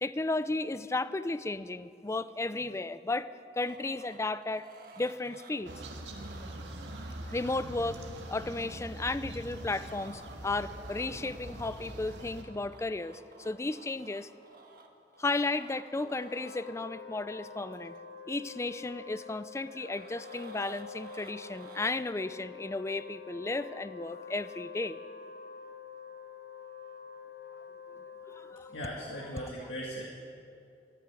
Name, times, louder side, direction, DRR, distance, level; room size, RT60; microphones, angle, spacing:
voice 1, 0.0-4.7 5.0-5.7 6.8-7.0 7.3-8.0 8.3-14.3 15.2-17.9 18.3-25.0 28.3-28.7 29.4-29.7, left 2 dB, 15° left, 15 dB, 0.4 m, -34 dB
sound 1, 3.5-7.6 9.0-16.6 17.7-18.0 19.5-22.0, right 3 dB, 55° right, 1.3 m, -54 dB
sound 2, 5.7-12.4, right 1 dB, 90° right, 1.7 m, -43 dB
Wind instrument woodwind instrument, 16.0-29.4, left 6 dB, 60° left, 1.0 m, -47 dB
voice 2, 28.7-30.0, equal, 85° left, -3 dB, 2.0 m, -38 dB
14.5 x 9.9 x 9.4 m, 2.6 s
head